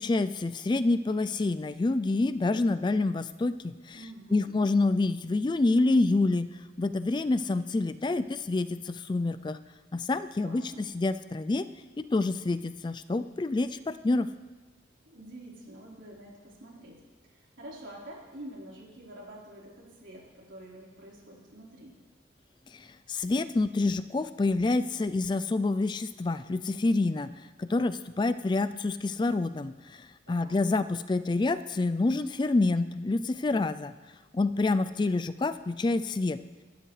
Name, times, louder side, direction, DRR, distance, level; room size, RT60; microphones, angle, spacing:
voice 1, 0.0-4.0 4.3-6.5 6.8-9.6 9.9-11.7 12.0-14.3 22.7-27.3 27.6-33.9 34.3-36.4, left 2 dB, 25° left, 13 dB, 0.3 m, -27 dB
voice 2, 3.9-4.7 10.4-10.8 15.1-21.9 30.3-30.6, right 1 dB, 90° right, -5 dB, 4.2 m, -47 dB
23.0 x 12.0 x 3.3 m, 1.3 s
head